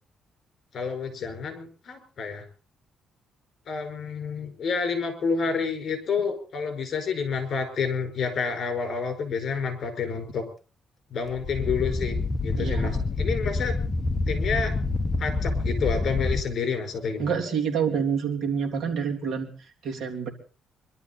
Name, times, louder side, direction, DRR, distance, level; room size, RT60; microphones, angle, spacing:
voice 1, 0.7-2.5 3.7-10.4 11.1-13.8 14.3-14.7 15.2-17.3, left 5 dB, 45° left, 6 dB, 5.2 m, -29 dB
sound 1, 11.3-16.4, left 3 dB, 20° left, 1.0 m, -27 dB
voice 2, 12.5-13.0 17.2-20.3, right 6 dB, 60° right, 1 dB, 3.3 m, -28 dB
25.0 x 12.5 x 4.2 m, 0.38 s
cardioid pair, 160°, 0 cm